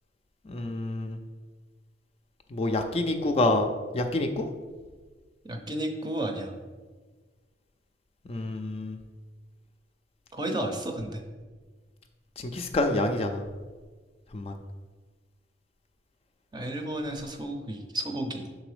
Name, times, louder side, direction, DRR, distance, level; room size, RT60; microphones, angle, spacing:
voice 1, 0.5-1.2 2.5-3.7 3.9-4.5 8.3-9.0 12.5-13.4 14.3-14.5, left 2 dB, 35° left, 5 dB, 0.4 m, -27 dB
voice 2, 5.4-6.5 10.3-11.2 16.5-18.5, right 1 dB, 25° right, 4 dB, 0.6 m, -32 dB
6.1 x 3.8 x 4.9 m, 1.4 s
head